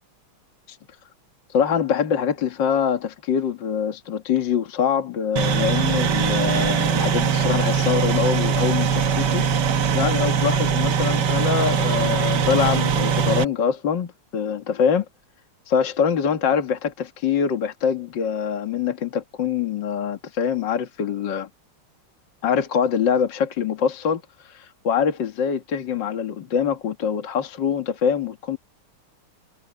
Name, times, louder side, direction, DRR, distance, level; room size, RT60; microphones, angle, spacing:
voice 1, 1.5-9.4 9.9-15.1 15.7-21.5 22.4-28.6, left 7 dB, 60° left, 2.3 m, -24 dB
sound 1, 5.4-13.4, right 7 dB, 60° right, 1.5 m, -21 dB
omnidirectional pair, 2.3 m